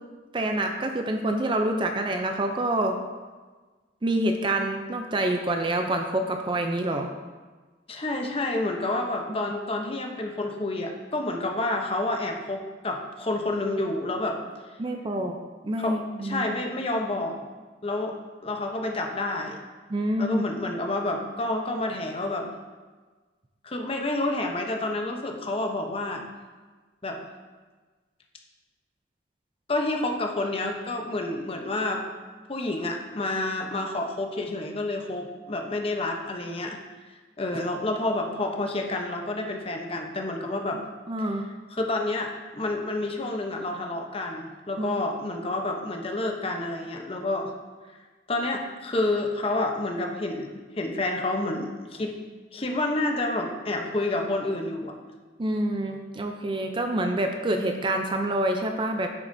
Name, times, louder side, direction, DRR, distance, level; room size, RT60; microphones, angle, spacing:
voice 1, 0.3-3.0 4.0-7.1 14.8-15.4 15.6-16.5 19.9-20.4 40.7-40.8 41.1-41.4 44.8-44.9 55.4-59.1, right 1 dB, 25° right, 4 dB, 0.5 m, -27 dB
voice 2, 7.9-14.4 15.8-17.4 17.8-18.2 18.4-19.6 20.2-22.5 23.6-26.2 27.0-27.2 29.7-32.0 32.5-36.8 37.4-40.8 41.7-47.5 48.3-50.5 50.8-52.1 52.5-54.9, left 2 dB, 30° left, 2 dB, 0.8 m, -29 dB
9.1 x 7.0 x 2.7 m, 1.3 s
head